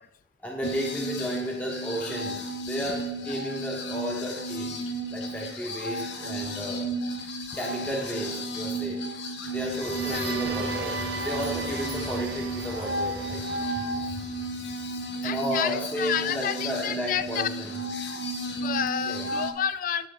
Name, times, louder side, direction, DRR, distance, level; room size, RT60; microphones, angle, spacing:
voice 1, 0.4-4.8 5.1-6.8 7.5-9.0 9.5-13.4 15.2-17.8 19.0-19.3, equal, 10° left, -1 dB, 1.0 m, -33 dB
sound 1, 0.6-19.5, right 1 dB, 85° left, 0.8 m, -33 dB
sound 2, 9.5-15.2, right 3 dB, 75° right, 0.9 m, -36 dB
voice 2, 13.8-14.2 15.2-17.5 18.5-20.1, left 8 dB, 50° left, 14 dB, 0.3 m, -30 dB
9.7 x 4.8 x 3.4 m, 0.89 s
head